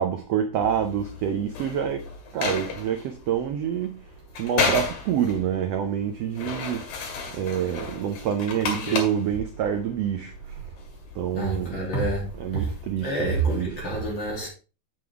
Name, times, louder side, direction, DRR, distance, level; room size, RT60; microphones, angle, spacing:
voice 1, 0.0-2.0 2.3-4.0 4.4-6.9 7.3-10.3 11.2-11.8 12.3-13.9, right 9 dB, 85° right, 1.4 m, -27 dB
sound 1, 0.6-13.4, left 5 dB, 80° left, 3.7 m, -34 dB
voice 2, 8.6-9.1 11.3-12.7 13.0-14.5, right 2 dB, 35° left, 3.4 m, -28 dB
7.8 x 7.5 x 3.6 m
omnidirectional pair, 3.9 m